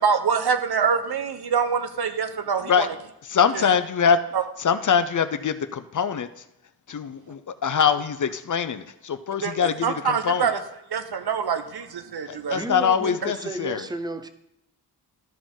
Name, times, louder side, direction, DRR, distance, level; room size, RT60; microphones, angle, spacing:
voice 1, 0.0-2.9 3.5-3.8 4.3-4.4 9.4-9.5 9.8-10.6 10.9-12.6, right 6 dB, 70° right, 8 dB, 0.8 m, -25 dB
voice 2, 3.3-4.2 4.6-6.3 6.9-10.5 12.3-13.8, left 7 dB, 50° left, 11 dB, 0.5 m, -23 dB
voice 3, 12.5-14.3, right 2 dB, 10° right, 11 dB, 0.5 m, -33 dB
13.0 x 5.0 x 3.7 m, 0.83 s
wide cardioid pair, 95°, 40 cm